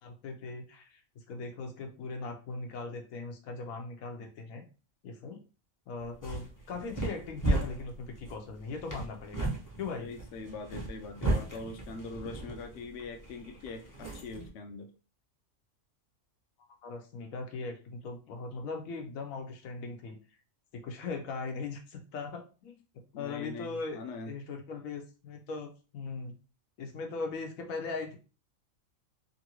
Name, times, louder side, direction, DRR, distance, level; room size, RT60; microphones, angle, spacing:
voice 1, 0.0-1.0 1.3-4.6 5.0-5.4 5.9-10.1 16.8-20.2 20.8-22.8 23.2-24.0 24.3-26.3 26.8-28.2, left 4 dB, 90° left, 4 dB, 1.1 m, -39 dB
sound 1, 6.0-14.5, right 2 dB, 20° left, 0.6 m, -36 dB
voice 2, 10.0-14.9 23.1-24.3, left 3 dB, 65° left, 5 dB, 0.8 m, -42 dB
3.0 x 2.5 x 2.9 m, 0.34 s
omnidirectional pair, 1.4 m